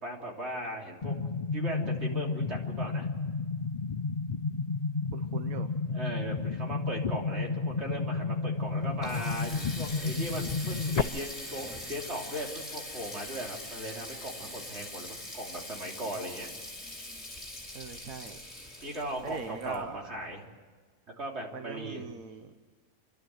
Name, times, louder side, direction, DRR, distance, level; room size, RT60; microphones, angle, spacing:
voice 1, 0.0-1.1 1.5-3.1 5.9-16.5 18.8-20.4 21.2-22.1, right 1 dB, 45° right, -1 dB, 3.7 m, -38 dB
sound 1, 1.0-11.0, left 4 dB, 60° left, 0.4 m, -32 dB
voice 2, 5.1-5.7 17.7-18.4 19.2-20.0 21.5-22.5, right 6 dB, 70° right, 7 dB, 1.4 m, -41 dB
Water tap faucet, 8.6-20.2, left 1 dB, 20° left, 4.3 m, -42 dB
29.0 x 12.0 x 7.8 m, 1.5 s
omnidirectional pair, 1.5 m